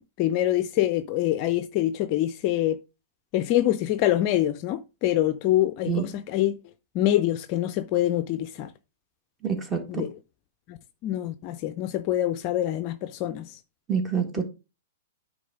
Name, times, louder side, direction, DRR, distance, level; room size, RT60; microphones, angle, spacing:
voice 1, 0.2-2.8 3.3-6.6 6.9-8.7 9.9-10.1 10.7-10.8 11.0-13.6, left 13 dB, 40° left, 0.5 m, -25 dB
voice 2, 9.4-10.1 13.9-14.4, right 6 dB, 15° right, 1.9 m, -27 dB
9.4 x 3.7 x 5.1 m
figure-of-eight pair, 110°, 0 cm